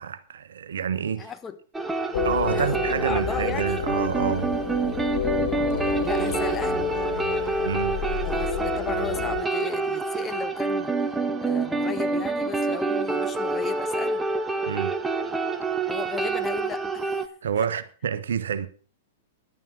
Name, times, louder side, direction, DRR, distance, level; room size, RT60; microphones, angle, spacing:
voice 1, 0.0-1.3 2.2-4.5 7.6-8.0 14.7-14.9 17.4-18.7, right 7 dB, 70° right, 1.2 m, -28 dB
voice 2, 1.2-1.6 2.5-3.8 6.0-6.9 8.2-11.2 11.4-14.3 15.9-17.2 17.6-17.7, left 7 dB, 20° left, 1.4 m, -35 dB
sound 1, 1.7-17.3, right 3 dB, 10° right, 1.3 m, -27 dB
sound 2, 2.1-9.4, left 7 dB, 65° left, 1.6 m, -31 dB
sound 3, 3.1-8.7, left 8 dB, 40° left, 2.6 m, -38 dB
11.0 x 9.1 x 6.4 m
hypercardioid pair, 105°, 0 cm